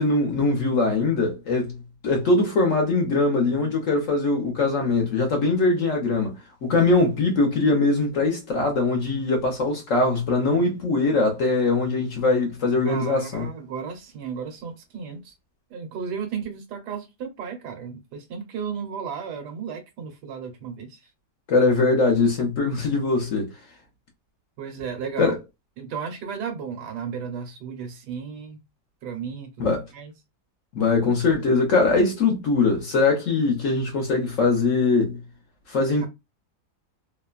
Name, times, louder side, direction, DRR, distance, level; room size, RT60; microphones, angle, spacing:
voice 1, 0.0-6.3 6.6-13.5 21.5-23.5 25.2-25.4 29.6-29.8 30.7-35.2 35.7-36.1, left 3 dB, 60° left, 0.9 m, -22 dB
voice 2, 12.8-15.3 15.7-21.1 24.6-25.4 25.8-28.6 29.0-30.1, right 6 dB, 70° right, 1.3 m, -34 dB
3.0 x 2.1 x 2.3 m
omnidirectional pair, 1.9 m